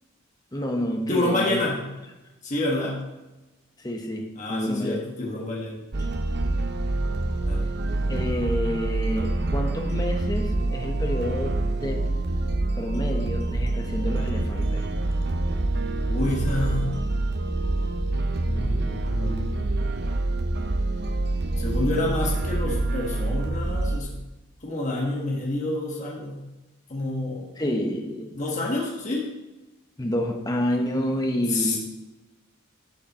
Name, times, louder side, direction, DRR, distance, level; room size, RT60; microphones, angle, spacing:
voice 1, 0.5-1.7 3.8-5.0 6.0-6.1 8.1-12.0 12.7-14.9 27.6-28.3 30.0-31.8, equal, 20° left, 2 dB, 1.1 m, -29 dB
voice 2, 1.1-1.8 2.4-3.0 4.4-5.8 7.4-7.7 16.1-16.9 18.5-19.7 21.6-24.2 24.6-26.4 26.9-27.5 28.3-29.3 31.5-31.8, left 2 dB, 35° left, -3 dB, 1.5 m, -28 dB
sound 1, 5.9-24.0, right 2 dB, 50° right, 0.8 m, -26 dB
12.0 x 6.7 x 4.3 m, 1.1 s
head